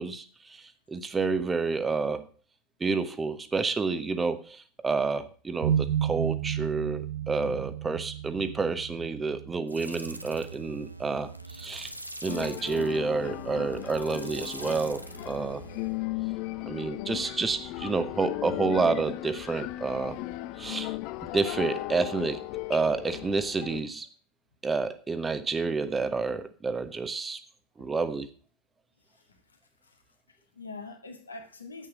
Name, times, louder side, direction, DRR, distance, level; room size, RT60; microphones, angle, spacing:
voice 1, 0.0-2.3 2.8-11.9 12.2-15.7 16.7-20.2 20.6-21.0 21.3-22.4 22.7-24.1 24.6-27.4 27.8-28.3, right 4 dB, 15° right, 12 dB, 1.2 m, -29 dB
sound 1, 5.6-11.4, right 10 dB, 60° right, 0.8 m, -33 dB
sound 2, 9.7-16.0, right 1 dB, 90° right, 0.9 m, -43 dB
sound 3, 12.3-23.8, left 18 dB, 45° left, 0.5 m, -36 dB
voice 2, 30.3-31.9, left 3 dB, 80° left, 4 dB, 2.2 m, -44 dB
10.5 x 8.6 x 6.3 m, 0.39 s
figure-of-eight pair, 85°, 0 cm